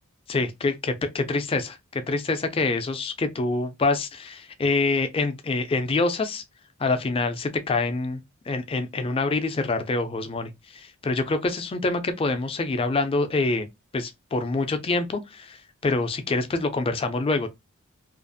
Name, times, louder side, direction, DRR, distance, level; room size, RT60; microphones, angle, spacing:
voice 1, 0.3-6.4 6.8-13.7 13.9-17.5, left 3 dB, 25° left, 0.4 m, -26 dB
2.4 x 2.3 x 2.5 m
head